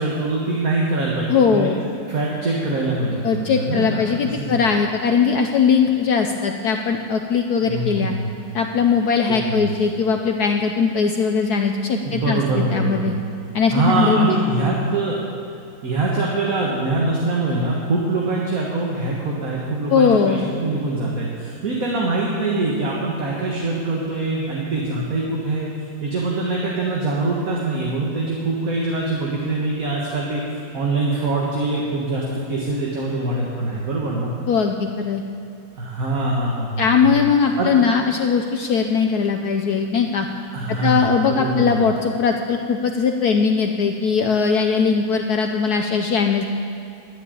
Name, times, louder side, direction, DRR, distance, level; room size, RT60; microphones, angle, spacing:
voice 1, 0.0-1.7 2.1-4.6 7.7-8.3 9.3-9.6 12.0-13.2 13.7-15.2 15.8-25.7 26.0-34.3 35.7-37.2 37.6-37.7 40.5-41.8, right 2 dB, 50° right, -3 dB, 2.0 m, -23 dB
voice 2, 1.3-1.8 3.2-8.1 8.5-13.1 13.5-14.4 19.9-20.4 34.5-35.2 36.8-40.3 40.7-46.4, left 5 dB, 65° left, 4 dB, 1.1 m, -20 dB
12.0 x 10.0 x 8.5 m, 2.6 s
omnidirectional pair, 2.1 m